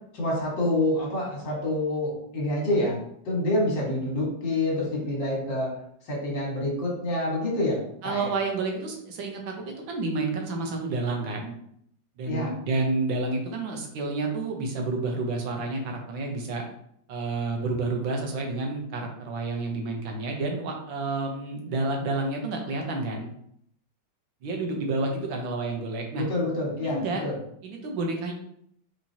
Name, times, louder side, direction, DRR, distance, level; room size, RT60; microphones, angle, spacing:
voice 1, 0.1-3.0 3.3-5.7 6.1-8.3 12.3-12.5 26.3-27.4, left 1 dB, 70° left, -3 dB, 2.2 m, -27 dB
voice 2, 8.0-11.5 12.2-16.7 17.1-23.3 24.4-26.2 26.8-27.2 27.6-28.3, right 3 dB, 85° right, 2 dB, 1.7 m, -30 dB
4.7 x 4.0 x 2.8 m, 0.69 s
omnidirectional pair, 2.1 m